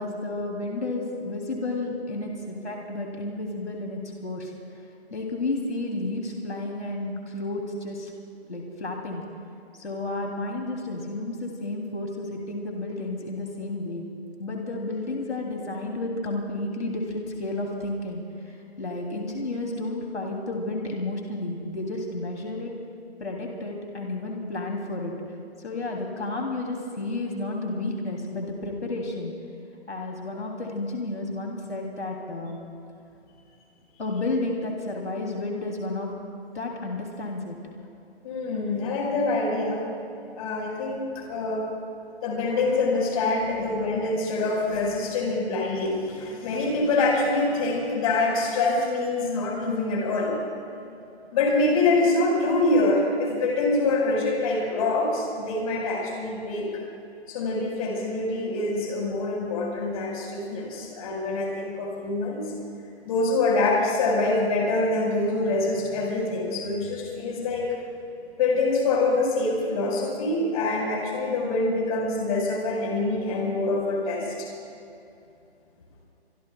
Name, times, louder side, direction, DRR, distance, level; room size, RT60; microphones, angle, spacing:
voice 1, 0.0-4.5 5.1-8.1 8.5-9.2 9.7-14.1 14.4-18.2 18.8-22.7 23.2-25.1 25.6-29.3 29.9-32.6 34.0-36.1 36.5-37.6, left 2 dB, 85° left, 0 dB, 3.1 m, -31 dB
voice 2, 38.2-39.8 40.4-41.7 42.2-50.4 51.3-56.7 57.3-62.5 63.0-67.7 68.4-74.5, left 2 dB, 35° left, -1 dB, 5.0 m, -25 dB
25.0 x 24.5 x 2.3 m, 2.7 s
figure-of-eight pair, 150°, 33 cm